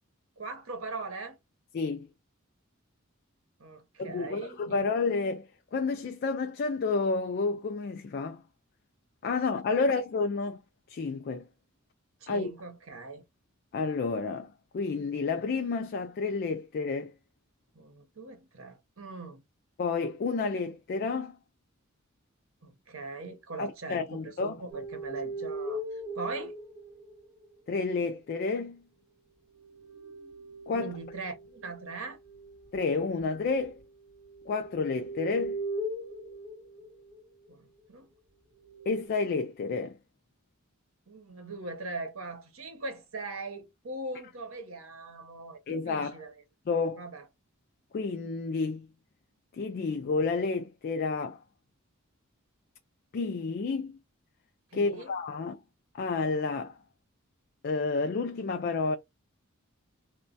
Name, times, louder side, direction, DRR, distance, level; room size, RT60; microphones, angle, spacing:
voice 1, 0.4-1.4 3.6-4.7 9.7-9.9 12.2-13.2 17.7-19.4 22.6-26.5 30.7-32.2 37.5-38.1 41.1-46.4 47.0-47.2 54.7-55.1, right 3 dB, 70° right, 0.9 m, -41 dB
voice 2, 1.7-2.1 4.0-8.4 9.2-10.6 10.9-11.5 12.3-12.5 13.7-17.1 19.8-21.4 23.6-24.5 27.7-28.8 30.7-30.9 32.7-33.7 34.5-35.6 38.9-40.0 45.7-46.2 46.7-47.0 47.9-48.9 49.5-51.4 53.1-54.0 54.7-55.6 55.9-56.8 57.6-59.0, left 4 dB, 45° left, 0.3 m, -30 dB
sound 1, 24.7-27.5 29.5-37.3 38.6-39.1, right 1 dB, 35° right, 1.9 m, -40 dB
3.0 x 2.2 x 2.5 m
head